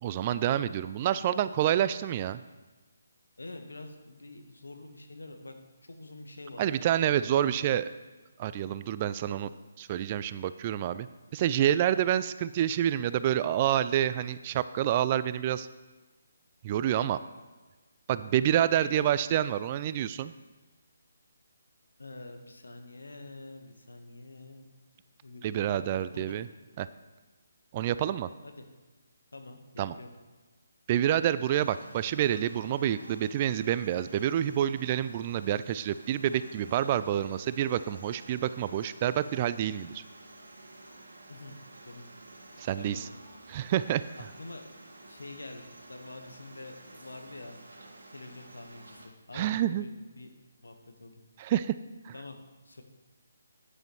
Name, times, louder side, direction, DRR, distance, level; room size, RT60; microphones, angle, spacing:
voice 1, 0.0-2.4 6.6-7.9 8.4-9.5 9.8-11.1 11.3-15.7 16.6-17.2 18.1-20.3 25.4-26.5 26.8-26.9 27.7-28.3 29.8-29.9 30.9-40.0 42.6-43.1 43.5-44.0 49.3-49.9 51.4-51.7 52.0-52.1, right 11 dB, 30° right, 15 dB, 0.3 m, -28 dB
voice 2, 3.4-5.6 5.9-7.1 7.4-7.8 18.8-18.9 22.0-24.7 25.2-26.4 28.4-28.7 29.3-30.1 41.3-41.6 41.8-42.0 42.8-43.0 44.2-44.6 45.0-45.6 45.9-47.6 48.1-50.3 50.6-51.2 52.1-52.8, left 2 dB, 75° left, 5 dB, 1.4 m, -46 dB
sound 1, 31.5-49.1, right 2 dB, 70° right, 1.7 m, -51 dB
11.0 x 9.8 x 3.2 m, 1.3 s
figure-of-eight pair, 145°, 0 cm